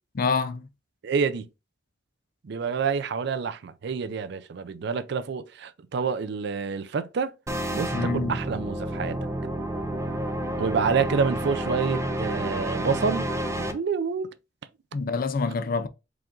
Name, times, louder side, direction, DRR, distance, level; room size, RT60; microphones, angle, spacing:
voice 1, 0.1-0.7 7.9-8.4 14.9-15.9, left 4 dB, 50° left, 0.4 m, -26 dB
voice 2, 1.0-1.5 2.4-7.3 7.7-9.2 10.6-13.3 13.7-14.3, right 5 dB, 65° right, 0.4 m, -28 dB
sound 1, 7.5-13.7, right 1 dB, 15° right, 0.5 m, -30 dB
4.8 x 2.5 x 3.6 m
head